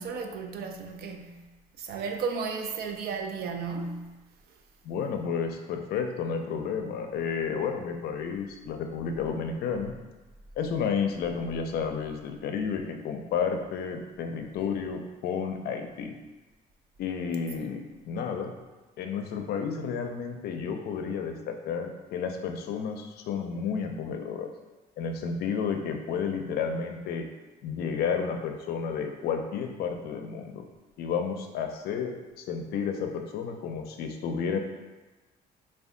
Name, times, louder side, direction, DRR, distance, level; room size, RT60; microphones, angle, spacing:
voice 1, 0.0-1.5 1.8-4.2 17.6-17.7, right 5 dB, 65° right, 3 dB, 0.5 m, -34 dB
voice 2, 4.8-9.9 10.6-16.1 17.0-18.5 19.0-24.5 25.0-27.3 27.6-30.6 31.0-34.6, left 6 dB, 70° left, 5 dB, 0.5 m, -31 dB
3.4 x 2.3 x 3.7 m, 1.2 s
cardioid pair, 110°, 17 cm